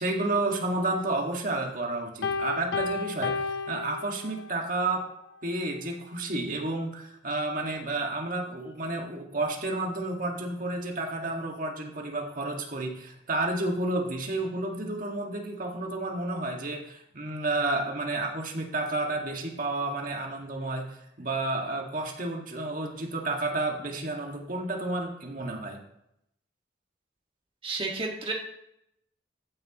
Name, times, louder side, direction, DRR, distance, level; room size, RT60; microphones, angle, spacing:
voice 1, 0.0-5.0 5.4-25.8, right 2 dB, 50° right, 1 dB, 1.8 m, -31 dB
Piano, 2.2-4.6, left 4 dB, 75° left, 0.8 m, -32 dB
voice 2, 27.6-28.3, right 3 dB, 30° right, 0 dB, 1.7 m, -31 dB
14.0 x 9.6 x 3.0 m, 0.79 s
head